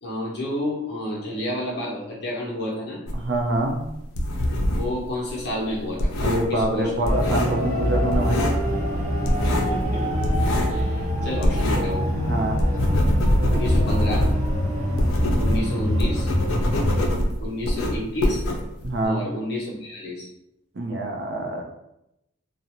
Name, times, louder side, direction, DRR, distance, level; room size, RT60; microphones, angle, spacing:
voice 1, 0.0-3.0 4.8-6.1 6.5-6.9 9.4-10.2 10.7-12.0 13.5-14.3 15.4-16.3 17.4-18.4 19.0-20.3, left 1 dB, 50° left, -3 dB, 0.7 m, -30 dB
sound 1, 3.1-5.0 5.3-7.8 8.1-8.7 9.0-12.0 12.3-19.1, left 1 dB, 85° left, 0.4 m, -24 dB
voice 2, 3.1-3.8 6.2-8.4 12.3-12.6 18.8-19.2 20.8-21.6, right 1 dB, 55° right, 2 dB, 0.4 m, -25 dB
sound 2, 7.0-17.0, equal, 35° right, 0.8 m, -25 dB
2.5 x 2.0 x 2.9 m, 0.85 s
head